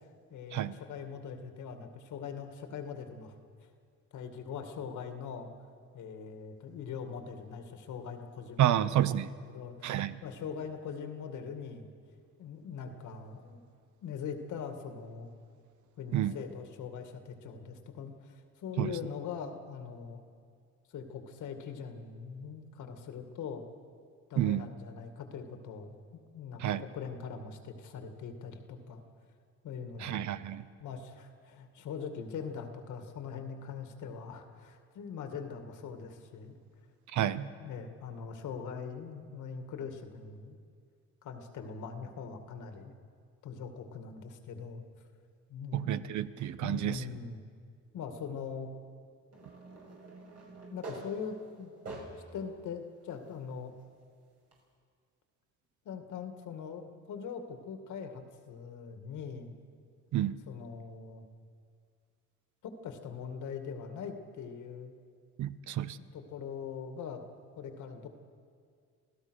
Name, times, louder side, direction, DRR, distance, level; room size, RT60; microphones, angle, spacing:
voice 1, 0.3-3.3 4.1-5.5 5.9-8.9 9.4-11.9 12.4-13.6 14.0-15.3 16.0-20.2 20.9-23.7 24.3-29.0 29.6-30.3 30.8-36.6 37.2-40.6 41.2-42.9 43.4-44.8 45.5-46.1 46.6-47.4 47.9-48.7 50.7-51.7 52.3-53.7 55.9-59.5 60.2-61.3 62.6-64.9 65.9-67.2 67.6-68.1, left 6 dB, 80° left, 6 dB, 2.2 m, -42 dB
voice 2, 8.6-9.3 9.8-10.1 16.1-16.4 18.8-18.9 24.4-24.7 26.6-26.8 30.0-30.7 37.1-37.5 45.7-47.0 60.1-60.4 65.4-66.0, right 12 dB, 70° right, 15 dB, 0.9 m, -30 dB
sound 1, 49.3-52.4 53.0-53.1 54.5-54.6, right 2 dB, 55° right, 6.0 m, -46 dB
26.5 x 16.0 x 6.4 m, 2.2 s
cardioid pair, 90°, 30 cm